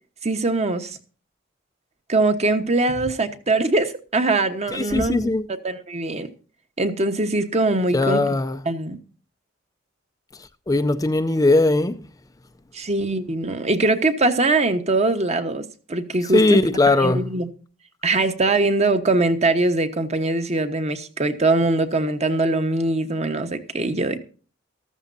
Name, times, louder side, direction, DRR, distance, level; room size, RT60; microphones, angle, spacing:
voice 1, 0.2-1.0 2.1-6.3 6.8-8.3 8.6-9.0 12.7-16.6 16.9-17.5 18.0-24.2, right 2 dB, 35° right, 1.2 m, -22 dB
voice 2, 4.7-5.4 7.9-8.6 10.7-12.0 16.3-17.3, left 2 dB, 15° left, 0.5 m, -19 dB
14.0 x 14.0 x 2.7 m
head